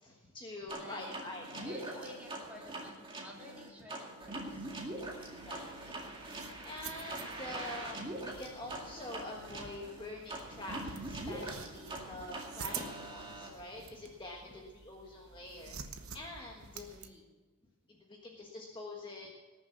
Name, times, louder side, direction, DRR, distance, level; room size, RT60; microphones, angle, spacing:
voice 1, 0.0-2.1 5.2-5.9 6.2-16.9 17.9-19.3, left 2 dB, 20° left, -1 dB, 1.4 m, -46 dB
voice 2, 0.7-1.2 1.6-4.8 11.8-12.1 14.3-14.7 16.7-17.3, left 1 dB, 5° right, -3 dB, 3.3 m, -52 dB
sound 1, 0.7-13.5, right 2 dB, 25° right, 2.2 m, -43 dB
sound 2, 4.2-17.1, right 6 dB, 75° right, 1.1 m, -49 dB
19.0 x 7.2 x 7.2 m, 1.2 s
head